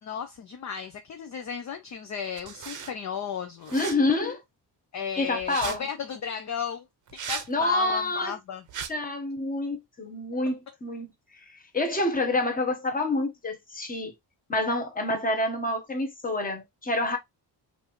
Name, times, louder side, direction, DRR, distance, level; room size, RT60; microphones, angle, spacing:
voice 1, 0.0-3.9 4.9-6.9 7.1-8.6, left 7 dB, 40° left, 0.5 m, -34 dB
sound 1, 2.4-2.9 3.6-4.0 5.4-5.8 7.1-7.5 8.7-8.9, right 7 dB, 45° right, 0.7 m, -36 dB
voice 2, 3.7-4.4 5.2-5.9 7.5-8.4 8.9-11.1 11.5-14.1 14.5-17.2, left 2 dB, 20° left, 1.1 m, -27 dB
5.2 x 2.6 x 3.0 m
wide cardioid pair, 160°, 44 cm